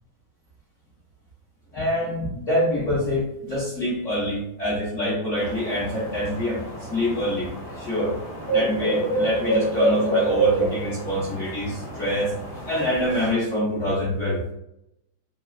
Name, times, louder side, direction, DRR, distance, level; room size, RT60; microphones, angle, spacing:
voice 1, 1.7-6.6 6.9-8.1 8.5-12.3 12.7-14.4, left 1 dB, 55° left, -8 dB, 1.0 m, -25 dB
sound 1, 5.4-13.3, right 2 dB, 30° right, 0.4 m, -27 dB
3.1 x 2.4 x 2.3 m, 0.80 s
omnidirectional pair, 2.0 m